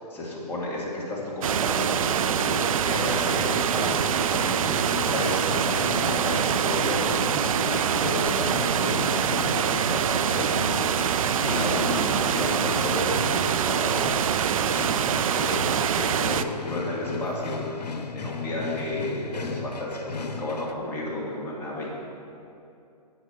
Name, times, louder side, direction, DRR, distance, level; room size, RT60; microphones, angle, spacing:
voice 1, 0.1-21.9, left 1 dB, 10° left, -6 dB, 1.9 m, -32 dB
sound 1, 1.4-16.4, right 8 dB, 55° right, 0.4 m, -25 dB
sound 2, 2.9-20.7, left 4 dB, 85° left, 0.8 m, -36 dB
8.0 x 7.9 x 5.9 m, 2.6 s
hypercardioid pair, 140°, 21 cm